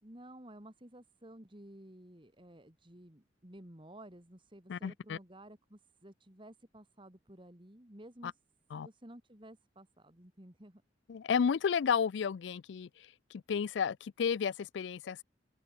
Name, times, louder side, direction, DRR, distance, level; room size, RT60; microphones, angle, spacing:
voice 1, 0.0-8.4 8.7-10.8, right 1 dB, 25° right, 2.7 m, -53 dB
voice 2, 4.7-5.2 8.7-8.9 11.1-15.2, left 6 dB, 75° left, 0.4 m, -32 dB
open air
head